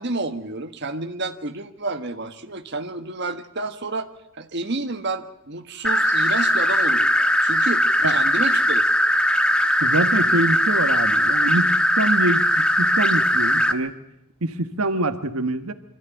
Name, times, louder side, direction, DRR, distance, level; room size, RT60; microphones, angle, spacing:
voice 1, 0.0-4.1 4.3-8.8, right 3 dB, 55° right, 6 dB, 1.5 m, -30 dB
sound 1, 5.8-13.7, equal, 5° left, 1.1 m, -19 dB
voice 2, 9.8-13.9 14.4-15.7, right 2 dB, 90° right, 9 dB, 1.5 m, -25 dB
25.5 x 14.0 x 9.1 m, 0.82 s
head